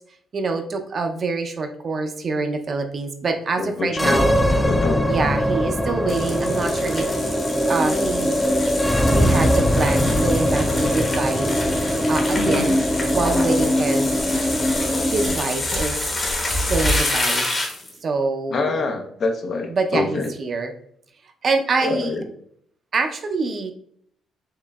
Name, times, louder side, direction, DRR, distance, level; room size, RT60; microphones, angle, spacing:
voice 1, 0.3-4.3 5.0-7.1 7.7-8.4 9.0-11.6 11.8-12.8 13.1-14.1 15.1-16.0 16.7-17.5 18.0-18.8 19.7-20.7 21.4-22.2 22.9-23.7, right 3 dB, 45° right, 5 dB, 0.5 m, -25 dB
voice 2, 3.6-4.2 4.6-5.0 12.4-12.7 18.5-20.3 21.8-22.2, left 3 dB, 55° left, 5 dB, 0.6 m, -25 dB
sound 1, 3.9-15.4, equal, 5° left, 0.4 m, -21 dB
sound 2, 6.1-17.9, left 1 dB, 35° left, 1.1 m, -27 dB
4.7 x 3.1 x 2.2 m, 0.67 s
cardioid pair, 90°, 0 cm